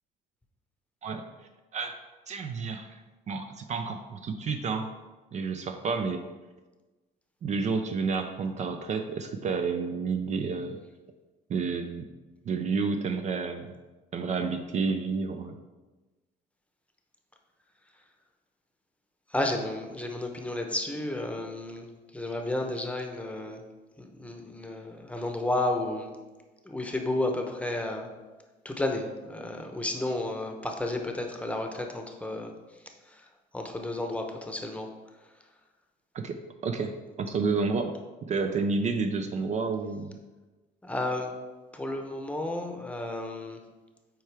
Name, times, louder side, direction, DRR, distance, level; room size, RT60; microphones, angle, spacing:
voice 1, 2.3-2.9 3.3-4.9 5.3-6.2 7.4-10.8 11.5-12.1 12.5-13.7 14.1-15.5 36.1-36.9 37.2-37.9 38.3-40.2, right 4 dB, 45° right, 7 dB, 0.5 m, -30 dB
voice 2, 19.3-21.9 22.1-23.6 24.0-26.1 26.6-28.1 28.6-32.5 33.0-33.3 33.5-34.9 40.8-41.3 41.7-43.6, left 2 dB, 5° left, 3 dB, 0.8 m, -32 dB
7.6 x 4.6 x 3.4 m, 1.2 s
cardioid pair, 110°, 17 cm